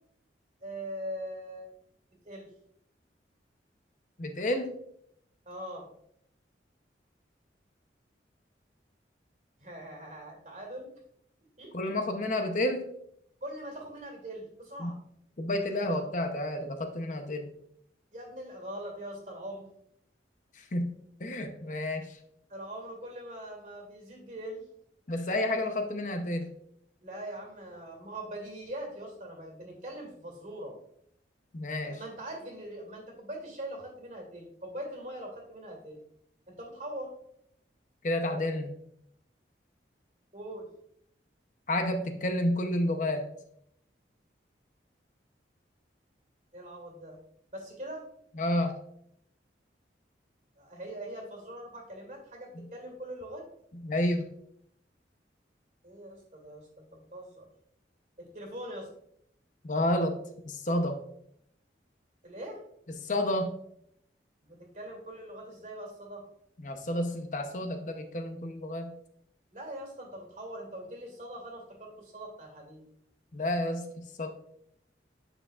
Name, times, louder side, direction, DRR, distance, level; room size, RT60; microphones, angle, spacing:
voice 1, 0.6-1.7 2.2-2.5 5.5-5.9 9.6-10.9 11.6-11.9 13.4-15.0 18.1-19.7 22.5-24.6 27.0-30.7 31.8-36.0 36.5-37.1 40.3-40.7 46.5-47.2 47.5-48.1 50.6-53.5 55.8-57.5 58.2-58.9 62.2-62.6 64.4-66.2 69.5-72.8, right 1 dB, 45° right, 2 dB, 2.2 m, -42 dB
voice 2, 4.2-4.7 11.7-12.9 14.8-14.9 15.4-17.5 20.6-22.2 25.1-26.5 31.5-32.0 38.0-38.7 41.7-43.2 48.4-48.8 53.8-54.3 59.6-60.1 60.4-61.0 63.0-63.5 66.6-68.9 73.3-74.3, left 1 dB, 45° left, 6 dB, 0.7 m, -30 dB
8.9 x 6.2 x 2.4 m, 0.71 s
head